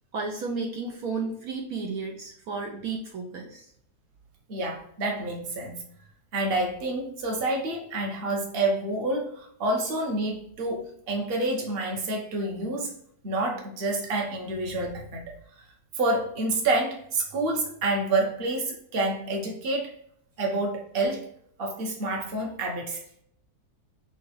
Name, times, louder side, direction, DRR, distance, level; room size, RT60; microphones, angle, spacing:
voice 1, 0.1-3.7, right 4 dB, 70° right, 1 dB, 1.1 m, -33 dB
voice 2, 4.5-5.9 6.3-12.9 13.2-15.4 16.0-19.9 20.4-21.3 21.6-23.0, right 2 dB, 40° right, 0 dB, 1.1 m, -28 dB
6.0 x 2.3 x 3.1 m, 0.68 s
omnidirectional pair, 1.7 m